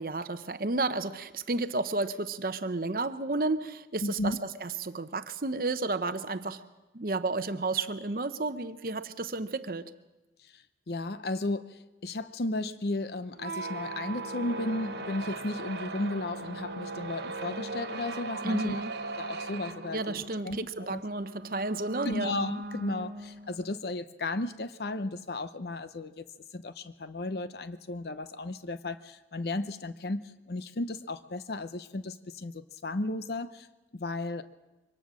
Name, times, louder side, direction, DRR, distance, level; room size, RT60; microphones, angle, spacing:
voice 1, 0.0-6.6 6.9-9.9 18.4-18.9 19.9-22.3, right 3 dB, 55° right, 11 dB, 0.8 m, -32 dB
voice 2, 4.0-4.4 10.5-18.8 19.2-21.0 22.0-26.2 26.5-33.7 33.9-34.4, left 2 dB, 65° left, 12 dB, 0.7 m, -34 dB
sound 1, 13.3-23.7, right 2 dB, 70° right, 1.1 m, -39 dB
23.5 x 18.0 x 6.2 m, 1.1 s
head